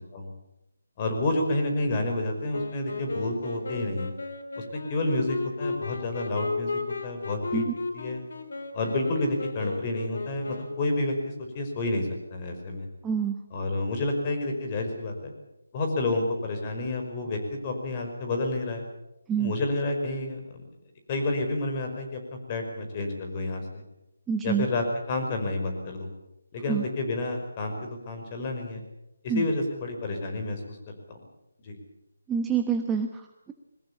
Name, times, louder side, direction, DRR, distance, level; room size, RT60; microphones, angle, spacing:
voice 1, 1.0-4.1 4.6-7.6 7.9-8.2 8.7-12.9 13.5-15.3 15.7-18.8 19.4-20.6 21.1-22.2 22.5-23.8 24.4-26.1 26.5-28.8 29.2-30.8 31.1-31.2 31.6-31.8, left 2 dB, 25° left, 4 dB, 5.4 m, -29 dB
Wind instrument woodwind instrument, 2.5-10.9, left 3 dB, 65° left, 4.0 m, -34 dB
voice 2, 13.0-13.4 19.3-19.5 24.3-24.7 26.7-26.8 29.3-29.4 32.3-33.5, right 7 dB, 10° right, 4 dB, 1.2 m, -27 dB
22.0 x 19.5 x 8.6 m, 0.88 s
figure-of-eight pair, 160°, 0 cm